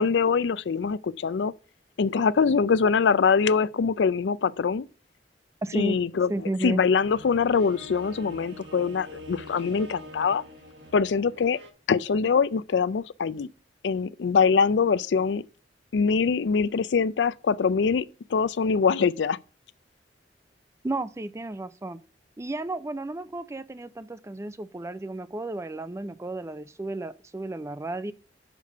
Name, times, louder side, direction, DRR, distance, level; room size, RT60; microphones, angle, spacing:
voice 1, 0.0-1.5 2.0-4.9 5.7-10.4 10.9-11.6 11.9-13.5 13.8-15.5 15.9-18.1 18.3-19.4, left 5 dB, 80° left, 0.4 m, -23 dB
voice 2, 5.6-6.0 6.3-6.8 20.8-22.0 22.4-28.1, right 2 dB, 15° right, 0.4 m, -33 dB
sound 1, 6.3-11.7, equal, 85° right, 1.6 m, -45 dB
6.6 x 5.1 x 6.6 m
head